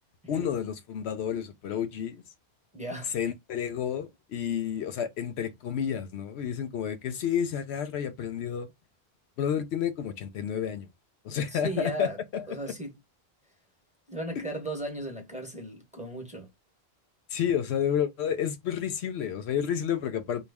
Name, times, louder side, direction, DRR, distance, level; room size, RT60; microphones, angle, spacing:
voice 1, 0.3-2.2 3.0-8.7 9.4-10.9 11.2-12.7 14.4-14.5 17.3-20.5, left 8 dB, 80° left, 0.9 m, -30 dB
voice 2, 2.7-3.1 11.5-12.2 12.5-12.9 14.1-16.5, right 1 dB, 5° right, 1.0 m, -36 dB
3.1 x 2.2 x 3.4 m
omnidirectional pair, 1.1 m